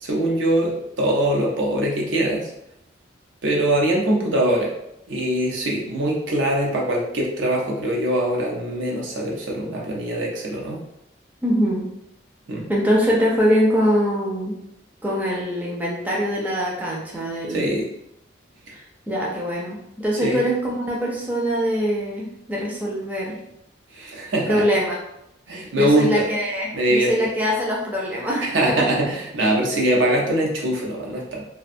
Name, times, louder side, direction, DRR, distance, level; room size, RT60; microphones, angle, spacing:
voice 1, 0.0-2.5 3.4-4.7 5.1-10.8 12.5-12.7 17.5-17.9 18.7-18.8 20.2-20.4 23.9-24.6 25.5-26.3 26.7-27.1 28.5-31.4, right 1 dB, 80° right, -2 dB, 0.6 m, -22 dB
voice 2, 11.4-11.8 12.7-14.5 15.0-17.8 18.7-23.4 24.5-25.0 25.8-28.9, equal, 10° right, -4 dB, 0.4 m, -23 dB
2.5 x 2.2 x 2.5 m, 0.82 s
head